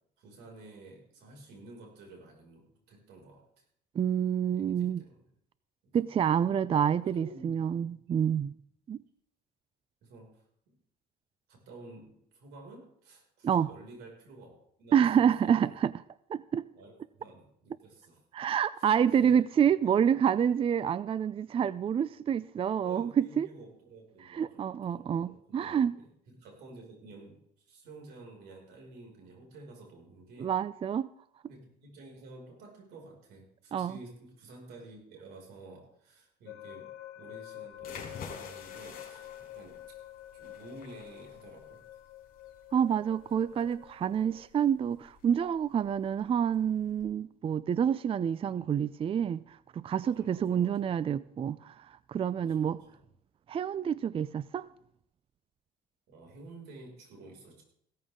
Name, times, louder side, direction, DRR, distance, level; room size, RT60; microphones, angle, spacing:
voice 1, 0.2-3.6 4.5-5.2 5.8-6.6 7.0-7.5 10.0-10.8 11.5-15.8 16.7-18.2 18.8-19.4 22.8-30.5 31.5-40.0 40.3-41.8 43.3-43.6 48.4-48.7 50.0-50.9 52.4-53.0 56.1-57.6, right 2 dB, 80° right, 5.9 m, -51 dB
voice 2, 4.0-5.0 5.9-8.5 8.9-9.0 13.4-13.7 14.9-15.9 16.3-16.7 18.3-23.5 24.2-26.0 30.4-31.1 33.7-34.0 42.7-52.8 53.5-54.7, right 8 dB, 35° right, 0.4 m, -28 dB
sound 1, 36.5-44.5, left 13 dB, 90° left, 1.2 m, -48 dB
sound 2, 37.7-47.0, left 6 dB, 55° left, 3.8 m, -50 dB
16.0 x 14.0 x 3.7 m
cardioid pair, 110°, 17 cm